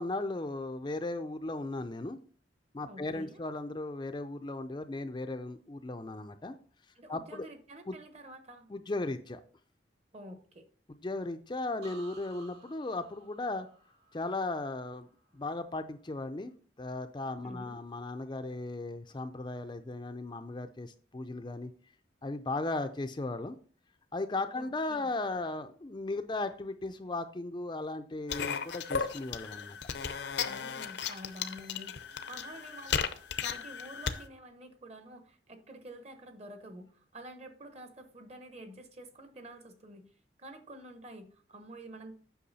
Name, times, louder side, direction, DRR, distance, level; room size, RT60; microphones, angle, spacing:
voice 1, 0.0-2.2 2.7-6.5 7.1-7.5 7.9-8.0 8.7-9.4 11.0-13.7 14.1-15.1 15.3-16.5 16.8-21.7 22.2-23.6 24.1-29.8, left 2 dB, 25° left, 8 dB, 0.4 m, -36 dB
voice 2, 2.8-3.5 6.9-8.7 10.1-10.7 17.4-17.8 24.6-25.1 30.4-33.0 33.4-40.0 40.4-42.1, right 1 dB, 35° right, 8 dB, 1.0 m, -49 dB
sound 1, 11.8-15.6 16.0-16.5, right 3 dB, 70° right, 2.2 m, -56 dB
sound 2, 28.3-34.2, left 6 dB, 75° left, 0.6 m, -35 dB
8.4 x 5.9 x 4.1 m, 0.43 s
head